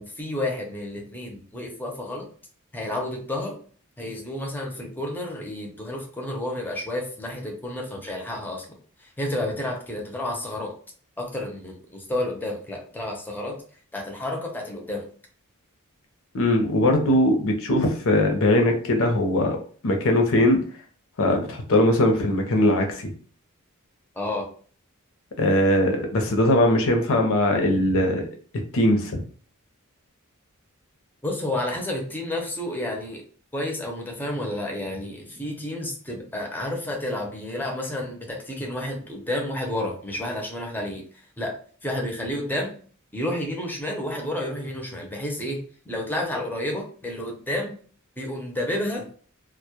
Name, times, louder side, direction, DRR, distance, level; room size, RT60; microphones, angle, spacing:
voice 1, 0.0-2.3 2.7-3.6 4.0-8.7 9.0-10.7 11.2-13.6 13.9-15.1 24.1-24.5 31.2-33.2 33.5-41.6 41.8-42.8 43.1-47.8 48.2-49.0, left 1 dB, 10° left, 1 dB, 0.5 m, -30 dB
voice 2, 16.3-19.6 19.8-20.6 21.2-23.1 25.4-28.3 28.7-29.2, left 1 dB, 65° left, 3 dB, 0.6 m, -20 dB
2.2 x 2.0 x 2.8 m, 0.44 s
head